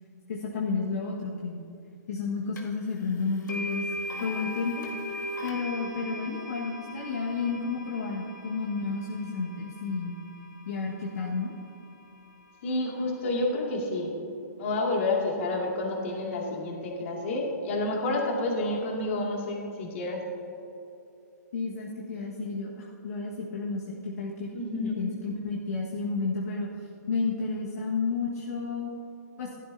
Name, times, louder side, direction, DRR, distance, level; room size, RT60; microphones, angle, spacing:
voice 1, 0.3-1.6 2.1-3.8 4.2-4.8 5.4-10.2 10.6-11.5 21.5-24.5 25.0-26.7 27.1-28.9 29.4-29.5, left 4 dB, 65° left, -4 dB, 1.6 m, -31 dB
sound 1, 2.6-2.7 3.5-11.5, left 1 dB, 85° left, 1.8 m, -39 dB
voice 2, 12.6-14.1 14.6-20.2 24.5-25.0, left 2 dB, 45° left, -1 dB, 2.5 m, -29 dB
15.0 x 12.0 x 2.8 m, 2.8 s
hypercardioid pair, 155°, 9 cm